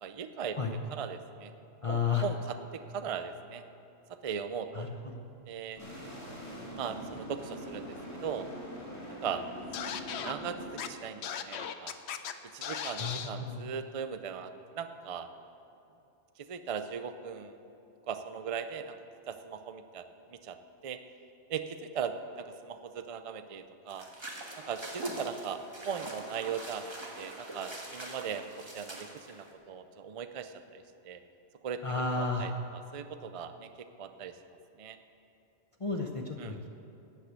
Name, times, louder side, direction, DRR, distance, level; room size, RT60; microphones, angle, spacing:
voice 1, 0.0-0.6 0.9-1.5 1.9-3.6 4.2-4.9 5.5-5.8 6.8-7.9 8.2-8.5 9.2-9.4 10.1-11.9 12.5-15.3 16.4-17.6 18.1-19.0 19.3-20.6 20.8-21.0 21.5-24.1 24.6-28.5 28.7-31.2 31.6-31.8 32.1-34.4 34.8-35.0 36.4-36.6, right 7 dB, 40° right, 9 dB, 0.5 m, -39 dB
voice 2, 1.8-2.2 4.7-4.9 5.1-5.2 13.0-13.7 31.8-32.5 35.8-36.7, left 4 dB, 30° left, 2 dB, 0.8 m, -32 dB
sound 1, 5.8-10.8, equal, 15° left, 2.6 m, -43 dB
Scratching (performance technique), 9.7-10.3 10.8-10.9 11.2-12.3 12.6-13.3, left 8 dB, 75° left, 1.0 m, -37 dB
sound 2, 23.9-29.5, right 1 dB, 25° right, 1.4 m, -44 dB
12.5 x 8.3 x 8.2 m, 2.9 s
omnidirectional pair, 1.1 m